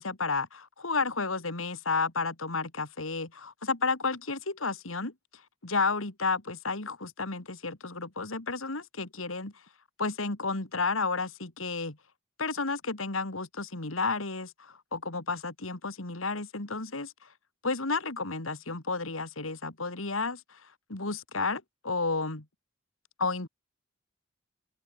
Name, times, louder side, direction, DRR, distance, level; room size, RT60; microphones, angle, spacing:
voice 1, 0.0-5.1 5.6-9.5 10.0-12.0 12.4-17.1 17.6-20.6 20.9-22.5 23.2-23.5, left 4 dB, 90° left, 2.7 m, -32 dB
open air
head